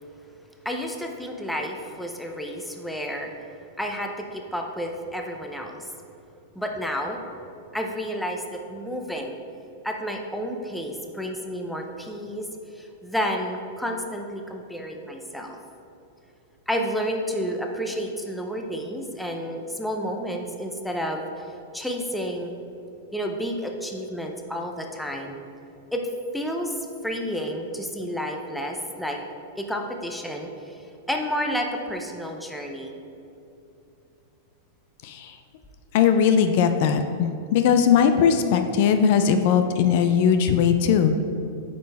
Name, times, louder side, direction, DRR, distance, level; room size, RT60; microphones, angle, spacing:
voice 1, 0.6-3.3 3.8-5.9 6.5-7.2 7.7-9.4 9.8-12.5 12.7-15.6 16.7-21.4 21.7-22.5 23.1-25.4 25.9-26.1 26.3-26.8 27.0-29.2 29.6-30.8 31.1-32.9, equal, ahead, 2 dB, 0.6 m, -30 dB
voice 2, 35.0-35.4 35.9-41.1, left 7 dB, 55° left, 8 dB, 0.4 m, -19 dB
8.7 x 5.3 x 3.4 m, 2.7 s
supercardioid pair, 145°, 0 cm